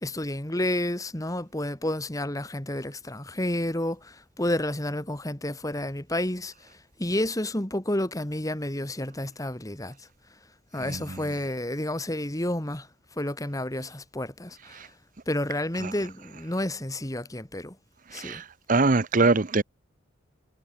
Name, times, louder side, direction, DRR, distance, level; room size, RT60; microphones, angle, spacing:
voice 1, 0.0-6.5 7.0-10.0 10.7-12.9 13.2-14.8 15.3-17.8 18.1-18.4, left 1 dB, 20° left, 1.9 m, -30 dB
voice 2, 18.7-19.6, right 3 dB, 45° right, 0.8 m, -21 dB
head